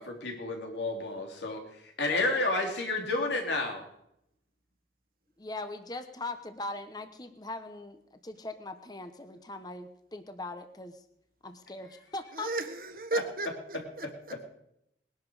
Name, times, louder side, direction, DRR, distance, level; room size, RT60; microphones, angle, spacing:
voice 1, 0.0-1.6 2.0-3.8 13.1-13.2 14.3-14.4, left 2 dB, 90° left, 2 dB, 3.3 m, -30 dB
voice 2, 5.4-11.0 11.4-12.5, left 2 dB, 20° left, 8 dB, 1.0 m, -40 dB
voice 3, 12.4-14.4, right 2 dB, 50° right, 8 dB, 1.5 m, -35 dB
20.5 x 11.5 x 4.9 m, 0.78 s
head